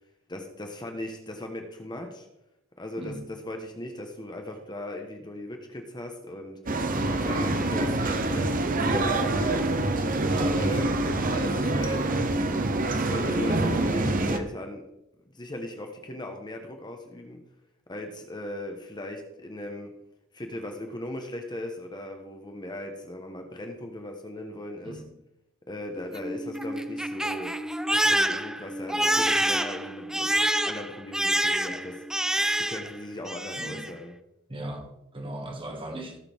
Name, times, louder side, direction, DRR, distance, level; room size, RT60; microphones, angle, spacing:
voice 1, 0.3-2.3 2.8-6.6 7.1-9.8 10.5-12.1 12.9-14.8 15.3-17.4 17.9-19.9 20.3-25.0 25.7-27.5 28.1-30.3 30.6-32.0 32.5-34.1, left 1 dB, 20° left, 1.2 m, -38 dB
sound 1, 6.7-14.4, right 2 dB, 45° right, 1.0 m, -26 dB
voice 2, 10.3-10.7 24.9-25.1 33.6-33.9 34.5-34.9 35.1-36.2, right 1 dB, 25° right, 2.0 m, -37 dB
Crying sobbing, 26.0-33.0 33.3-33.9, right 1 dB, 5° right, 0.5 m, -27 dB
18.0 x 6.9 x 3.6 m
head